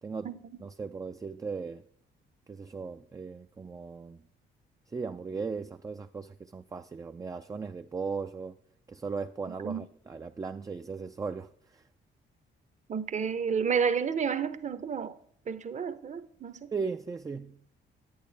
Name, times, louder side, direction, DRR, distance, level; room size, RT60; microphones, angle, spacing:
voice 1, 0.0-1.8 2.5-4.2 4.9-8.6 8.9-11.8 16.7-17.6, right 5 dB, 15° right, 0.3 m, -37 dB
voice 2, 12.9-15.1 15.5-16.7, right 6 dB, 35° right, 0.7 m, -30 dB
10.5 x 8.6 x 3.3 m
cardioid pair, 90°, 20 cm